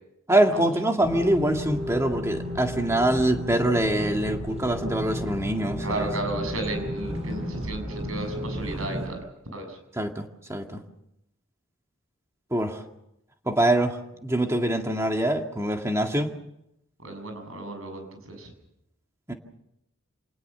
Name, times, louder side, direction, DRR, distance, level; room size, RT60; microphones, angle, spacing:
voice 1, 0.3-6.1 10.0-10.8 12.5-12.8 13.5-14.0 14.2-16.3 19.3-19.4, right 1 dB, 15° right, 3 dB, 2.0 m, -24 dB
sound 1, 1.0-9.1, equal, 30° right, 6.6 m, -33 dB
voice 2, 5.8-9.2 9.5-9.8 17.0-18.5, right 2 dB, 80° right, 5 dB, 7.2 m, -34 dB
27.5 x 19.5 x 6.9 m, 0.83 s
head